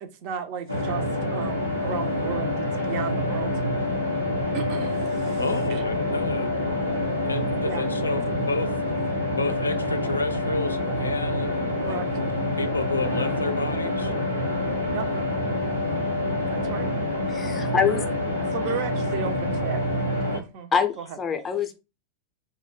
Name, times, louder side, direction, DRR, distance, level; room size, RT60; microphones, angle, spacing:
voice 1, 0.0-3.6 4.5-5.4 5.7-5.8 7.6-7.8 11.8-12.1 14.9-15.1 16.5-16.9 18.5-19.8 20.3-21.0, right 7 dB, 45° right, 0.4 m, -34 dB
sound 1, 0.7-20.4, left 1 dB, 90° right, 0.7 m, -27 dB
voice 2, 5.4-6.5 7.2-8.8 9.4-12.3 12.5-14.1, left 3 dB, 80° left, 0.3 m, -30 dB
voice 3, 17.3-18.1 20.7-21.8, left 7 dB, 20° left, 0.5 m, -25 dB
2.2 x 2.1 x 3.6 m
figure-of-eight pair, 90°, 0 cm